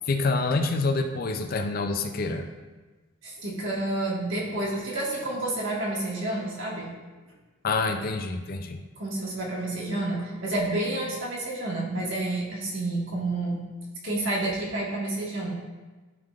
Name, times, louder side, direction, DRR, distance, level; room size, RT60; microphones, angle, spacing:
voice 1, 0.1-2.5 7.6-8.8, left 3 dB, 40° left, 6 dB, 0.4 m, -27 dB
voice 2, 3.2-6.9 9.0-13.6 14.0-15.5, right 2 dB, 55° right, -5 dB, 1.5 m, -29 dB
11.0 x 3.7 x 2.4 m, 1.3 s
head